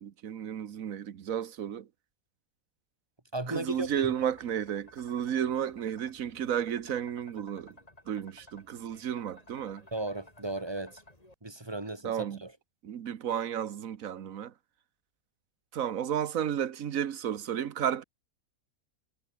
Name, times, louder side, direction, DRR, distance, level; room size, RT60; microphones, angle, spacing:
voice 1, 0.0-1.9 3.5-7.8 8.1-9.8 12.0-12.4 12.8-14.5 15.7-18.0, right 9 dB, 65° right, 1.4 m, -32 dB
voice 2, 3.3-4.1 9.9-11.0 11.4-12.5, right 2 dB, 15° right, 2.0 m, -35 dB
sound 1, 3.5-11.3, left 1 dB, 25° left, 4.9 m, -57 dB
omnidirectional pair, 1.6 m